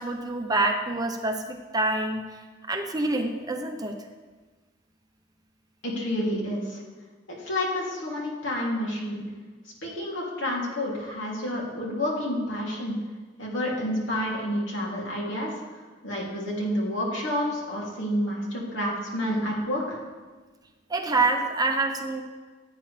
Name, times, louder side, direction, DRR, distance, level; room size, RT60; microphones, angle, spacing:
voice 1, 0.0-2.4 2.7-4.0 20.9-22.2, right 2 dB, 20° right, 3 dB, 1.0 m, -26 dB
voice 2, 5.8-6.8 7.4-9.2 9.8-12.9 13.4-15.5 16.0-20.0, left 1 dB, 85° left, -3 dB, 3.0 m, -29 dB
15.0 x 8.7 x 3.4 m, 1.4 s
head